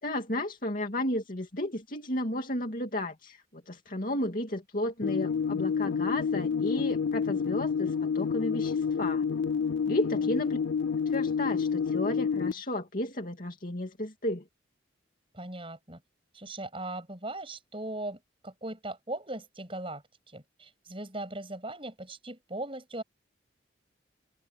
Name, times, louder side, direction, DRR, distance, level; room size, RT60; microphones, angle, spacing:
voice 1, 0.0-9.3 9.9-10.6 11.1-14.4, left 1 dB, 45° left, 2.7 m, -33 dB
sound 1, 5.0-12.5, left 6 dB, 75° left, 0.4 m, -29 dB
voice 2, 9.9-10.3 15.3-16.0 16.3-20.0 20.3-23.0, right 2 dB, 30° right, 7.5 m, -39 dB
head